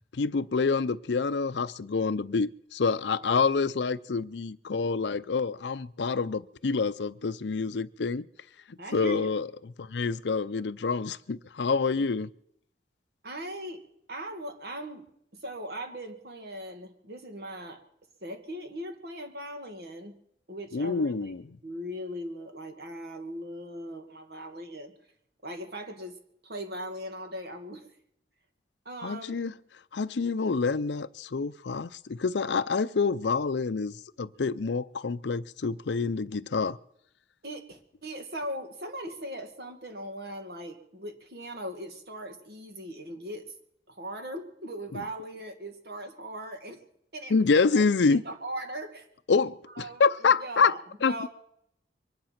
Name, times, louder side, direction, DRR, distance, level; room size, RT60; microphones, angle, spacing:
voice 1, 0.2-8.3 8.9-9.5 9.8-12.3 20.7-21.4 29.0-29.5 29.9-36.8 44.9-45.0 47.3-48.2 49.3-50.8 51.0-51.3, left 4 dB, 75° left, 0.5 m, -27 dB
voice 2, 8.8-9.3 13.2-13.8 14.1-15.0 15.4-17.8 18.2-20.2 20.5-21.3 21.6-24.9 25.4-26.2 26.4-27.9 28.9-29.4 37.4-43.5 43.9-46.8 47.1-47.4 47.7-47.8 48.1-49.1 49.7-51.3, right 1 dB, 60° right, 2.0 m, -39 dB
23.5 x 10.5 x 5.8 m
head